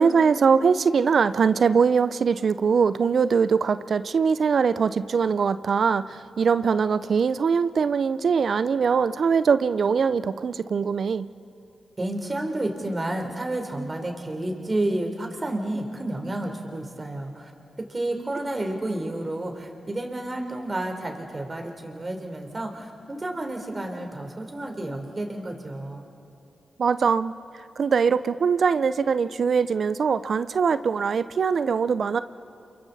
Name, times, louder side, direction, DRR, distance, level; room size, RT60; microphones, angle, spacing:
voice 1, 0.0-11.3 26.8-27.3 27.8-32.2, right 6 dB, 65° right, 14 dB, 0.5 m, -22 dB
voice 2, 12.0-17.5 17.8-26.1, right 1 dB, 35° right, 3 dB, 3.6 m, -30 dB
28.0 x 24.5 x 4.1 m, 2.6 s
supercardioid pair, 40°, 0 cm